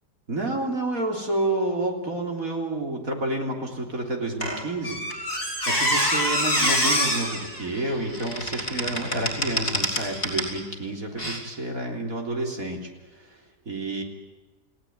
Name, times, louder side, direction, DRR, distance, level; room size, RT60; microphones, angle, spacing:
voice 1, 0.3-13.4 13.7-14.0, right 2 dB, 55° right, 2 dB, 4.0 m, -29 dB
Squeak, 4.4-10.6 11.2-11.4, equal, 30° left, 5.2 m, -26 dB
30.0 x 17.0 x 9.4 m, 1.2 s
omnidirectional pair, 1.7 m